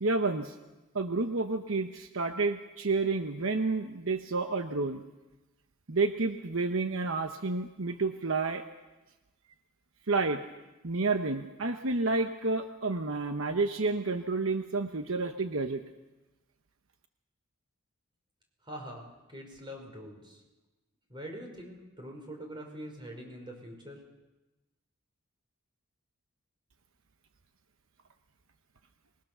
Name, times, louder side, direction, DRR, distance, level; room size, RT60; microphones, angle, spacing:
voice 1, 0.0-0.6 0.9-5.0 5.9-8.6 10.1-10.4 10.8-15.8, right 3 dB, 65° right, 7 dB, 1.0 m, -30 dB
voice 2, 18.6-20.4 21.1-24.0, equal, 20° right, 2 dB, 5.3 m, -44 dB
25.5 x 22.0 x 6.8 m, 1.1 s
head